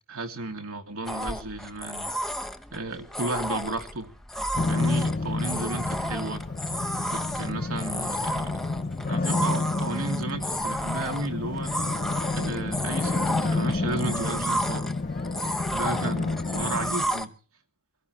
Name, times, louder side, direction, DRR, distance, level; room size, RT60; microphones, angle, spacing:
voice 1, 0.1-2.2 2.7-4.1 4.7-6.4 7.1-8.4 9.1-11.7 12.4-14.9 15.7-17.3, right 2 dB, 75° right, 2.8 m, -33 dB
sound 1, 1.1-17.3, equal, ahead, 1.0 m, -32 dB
sound 2, 4.5-16.9, left 3 dB, 35° left, 0.7 m, -29 dB
24.0 x 16.5 x 3.2 m
head